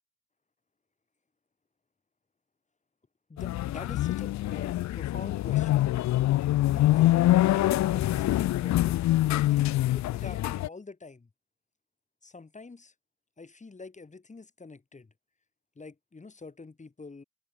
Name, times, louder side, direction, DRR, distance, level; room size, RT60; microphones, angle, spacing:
voice 1, 3.3-5.9 6.6-11.3 12.2-12.9 13.4-15.1 15.8-17.2, left 3 dB, 25° left, 3.7 m, -46 dB
sound 1, 3.4-10.7, left 15 dB, 65° left, 0.6 m, -25 dB
cardioid pair, 90°, 30 cm